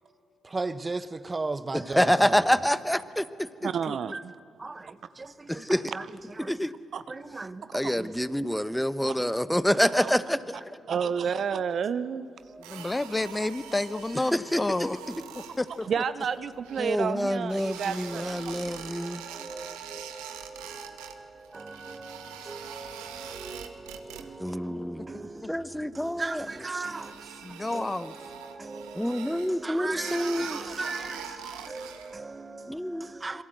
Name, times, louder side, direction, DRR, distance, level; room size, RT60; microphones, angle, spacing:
voice 1, 0.4-2.4 4.1-4.2 4.6-6.1 6.4-6.5 7.1-8.3 12.5-12.9 14.7-14.8 15.2-15.3 18.0-33.4, right 3 dB, 30° right, 1.1 m, -39 dB
voice 2, 1.7-3.5 5.5-5.9 6.5-6.7 7.7-10.8 14.3-14.9 16.8-19.2 24.4-25.1 25.5-26.5 26.7-26.8 29.0-30.6 32.7-33.2, equal, 5° left, 1.1 m, -27 dB
voice 3, 3.6-4.3 6.9-7.0 7.8-7.9 9.0-9.1 10.0-10.1 10.9-12.3 15.8-18.7 27.7-27.8 30.5-31.1 31.4-31.7, right 7 dB, 60° right, 0.7 m, -31 dB
sound 1, 12.6-17.1 17.5-21.2 21.4-24.5 24.8-25.3 25.6-25.7 26.2-32.2, right 8 dB, 85° right, 1.4 m, -44 dB
voice 4, 12.7-15.0 15.6-15.9 25.4-25.5 27.4-28.1, left 2 dB, 20° left, 0.8 m, -30 dB
26.0 x 22.5 x 7.9 m
hypercardioid pair, 45°, 0 cm